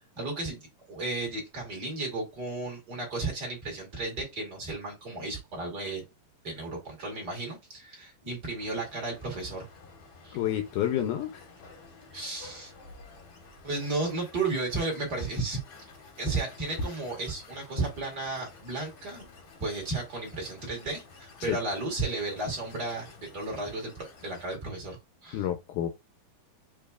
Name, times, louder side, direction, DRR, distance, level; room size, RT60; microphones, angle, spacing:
voice 1, 0.2-0.6 0.9-6.0 6.4-9.7 10.2-10.4 12.1-12.7 13.6-15.6 16.2-19.2 19.6-25.5, right 3 dB, 35° right, 1.8 m, -34 dB
sound 1, 8.6-24.6, left 2 dB, 60° left, 1.3 m, -48 dB
voice 2, 10.3-11.5 21.5-21.6 25.3-25.9, left 11 dB, 80° left, 2.0 m, -29 dB
6.8 x 2.7 x 2.3 m
omnidirectional pair, 4.0 m